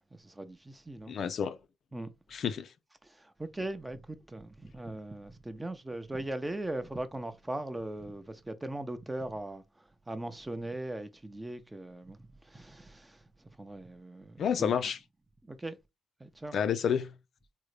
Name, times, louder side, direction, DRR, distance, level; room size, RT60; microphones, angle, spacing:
voice 1, 0.0-1.2 1.9-2.1 3.0-14.9 15.4-15.8 16.2-16.6, right 1 dB, 15° right, 0.5 m, -40 dB
voice 2, 1.1-1.6 2.3-2.7 14.4-15.0 16.5-17.1, left 7 dB, 60° left, 0.4 m, -29 dB
3.6 x 2.1 x 3.2 m
supercardioid pair, 60°, 0 cm